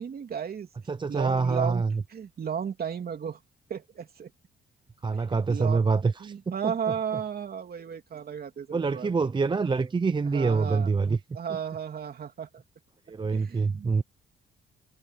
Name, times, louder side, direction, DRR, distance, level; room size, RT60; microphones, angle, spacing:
voice 1, 0.0-0.7 1.1-1.8 2.1-3.4 3.7-4.3 5.1-5.8 6.2-9.1 10.2-10.9 11.3-12.6 13.3-14.0, right 7 dB, 50° right, 3.1 m, -34 dB
voice 2, 0.9-2.0 5.0-6.3 6.6-6.7 8.7-11.2 13.1-14.0, right 4 dB, 25° right, 0.7 m, -25 dB
cardioid pair, 90°, 20 cm